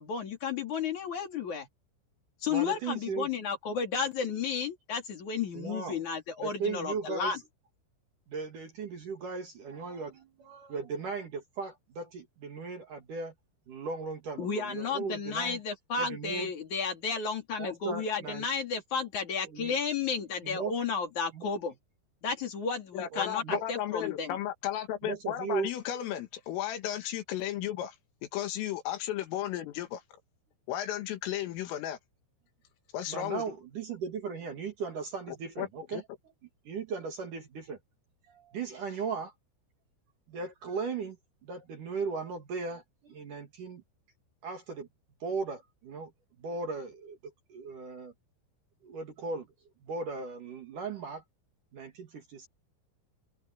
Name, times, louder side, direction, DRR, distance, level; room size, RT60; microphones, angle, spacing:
voice 1, 0.0-1.7 2.4-7.4 14.4-21.7 22.2-24.4, left 5 dB, 45° left, 3.8 m, -33 dB
voice 2, 2.5-3.3 5.5-6.0 6.4-7.4 8.3-13.3 13.7-15.6 16.0-16.5 17.6-18.5 19.5-19.8 20.4-20.7 21.3-21.5 23.1-23.6 25.0-25.7 33.1-36.0 36.6-37.8 38.3-39.3 40.3-41.2 41.4-43.8 44.4-44.9 45.2-46.1 46.4-47.2 47.5-48.1 48.8-49.5 49.8-51.2 51.7-52.5, right 5 dB, 50° right, 2.9 m, -37 dB
voice 3, 22.9-28.0 28.3-30.0 30.7-32.0 32.9-33.4 35.6-36.0, left 12 dB, 85° left, 4.6 m, -34 dB
omnidirectional pair, 5.7 m